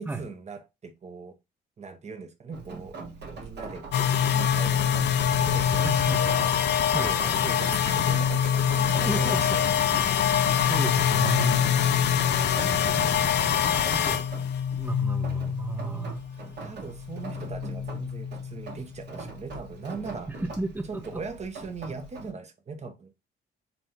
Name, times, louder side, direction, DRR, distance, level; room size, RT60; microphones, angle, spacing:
voice 1, 0.0-1.3 1.8-2.9 3.4-6.5 6.9-9.7 16.4-20.3 20.9-23.1, right 4 dB, 35° right, 0.9 m, -39 dB
Rain, 2.5-22.3, right 3 dB, 60° right, 1.3 m, -43 dB
sound 1, 3.9-16.6 16.9-19.4, left 9 dB, 60° left, 0.5 m, -25 dB
voice 2, 5.8-6.2 6.9-7.1 8.7-8.8 9.1-9.7 10.7-11.6 12.3-14.2 14.8-16.2 20.3-21.2, right 3 dB, 10° right, 0.6 m, -34 dB
4.1 x 2.8 x 3.4 m
cardioid pair, 90°, 20 cm